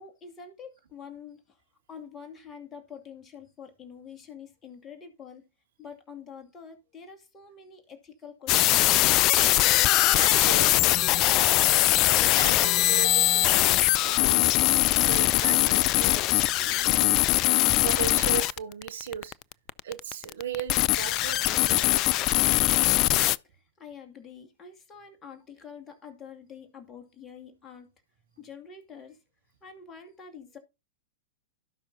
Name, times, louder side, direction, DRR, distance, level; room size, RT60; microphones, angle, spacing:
voice 1, 0.0-1.6 1.9-5.5 5.8-9.1 23.4-27.9 28.4-29.2 29.6-30.6, left 6 dB, 25° left, 2.3 m, -46 dB
sound 1, 8.5-23.4, left 16 dB, 40° left, 0.4 m, -22 dB
voice 2, 10.2-11.0 11.4-11.8 12.3-14.5 15.1-17.2 17.8-19.3 19.8-22.0, right 9 dB, 65° right, 1.7 m, -37 dB
16.5 x 5.5 x 2.7 m
figure-of-eight pair, 100°, 0 cm